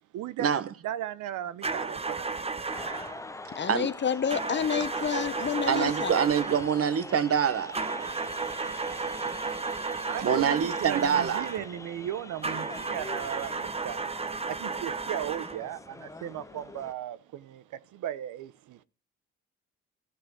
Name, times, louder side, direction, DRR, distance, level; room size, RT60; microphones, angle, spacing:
voice 1, 0.1-0.5 0.8-2.4 10.0-14.1 14.5-18.8, right 11 dB, 80° right, 0.8 m, -36 dB
sound 1, 1.6-3.2 4.3-6.7 7.7-11.7 12.4-15.7, right 4 dB, 20° right, 0.9 m, -33 dB
sound 2, 2.7-16.9, left 2 dB, 10° left, 0.6 m, -44 dB
voice 2, 3.5-6.2, left 7 dB, 35° left, 0.9 m, -29 dB
voice 3, 5.7-7.8 10.2-11.5, right 8 dB, 50° right, 1.2 m, -25 dB
14.0 x 6.2 x 4.7 m
cardioid pair, 90°, 30 cm